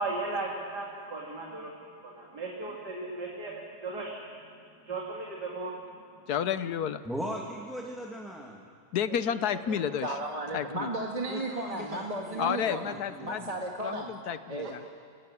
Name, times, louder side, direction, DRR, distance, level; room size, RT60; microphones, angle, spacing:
voice 1, 0.0-1.7 2.2-4.2 4.8-5.7 9.7-9.8, right 3 dB, 75° right, -2 dB, 3.2 m, -36 dB
voice 2, 6.3-7.0 8.9-10.1 10.5-10.9 12.4-13.5 13.8-14.8, left 8 dB, 70° left, 13 dB, 1.4 m, -31 dB
voice 3, 7.1-8.7 11.2-13.6, equal, ahead, -1 dB, 1.8 m, -39 dB
voice 4, 10.0-12.9 13.2-14.1 14.5-14.9, right 2 dB, 20° right, 0 dB, 2.0 m, -34 dB
27.0 x 19.0 x 9.8 m, 2.1 s
omnidirectional pair, 1.8 m